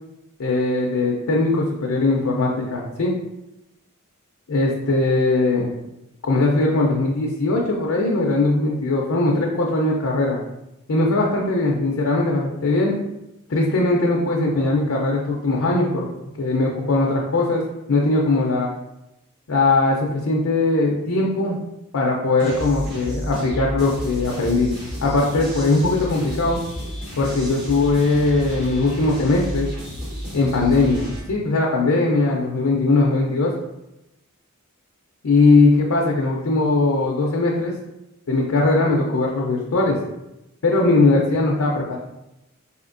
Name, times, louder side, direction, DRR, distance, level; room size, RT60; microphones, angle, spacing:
voice 1, 0.4-3.2 4.5-5.7 6.2-10.4 10.9-13.0 13.5-16.1 16.3-17.6 17.9-18.7 19.5-21.6 21.9-24.7 25.0-26.6 27.2-29.7 30.3-33.5 35.2-37.8 38.3-40.0 40.6-42.0, left 2 dB, 75° left, -2 dB, 0.5 m, -20 dB
sound 1, 22.4-31.2, equal, 50° right, 1.2 m, -32 dB
4.2 x 2.7 x 2.5 m, 0.90 s
head